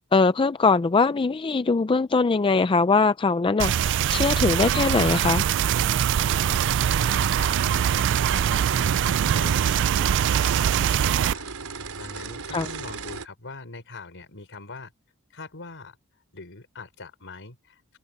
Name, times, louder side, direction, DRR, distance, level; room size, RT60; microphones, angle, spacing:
voice 1, 0.1-5.5 12.5-12.7, left 4 dB, 25° left, 0.4 m, -21 dB
sound 1, 3.6-11.3, right 9 dB, 55° right, 0.3 m, -23 dB
voice 2, 6.1-14.9 15.3-16.0 16.3-18.0, left 3 dB, 60° left, 4.3 m, -43 dB
sound 2, 6.3-13.3, right 5 dB, 75° right, 4.8 m, -36 dB
head